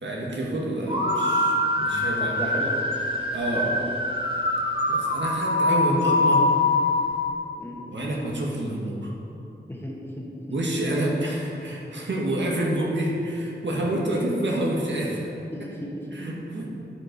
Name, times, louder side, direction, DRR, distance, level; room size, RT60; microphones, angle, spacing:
voice 1, 0.0-2.5 3.3-3.7 4.9-6.5 7.9-9.1 10.5-15.3 15.6-15.7 16.1-16.7, right 1 dB, 75° right, -2 dB, 1.7 m, -28 dB
sound 1, 0.9-7.3, left 2 dB, 25° right, 1.2 m, -24 dB
voice 2, 2.2-2.8 3.5-3.7 7.6-7.8 9.7-10.6 15.5-16.2, equal, 10° left, -3 dB, 1.7 m, -35 dB
12.5 x 5.3 x 5.3 m, 2.7 s
wide cardioid pair, 80°, 19 cm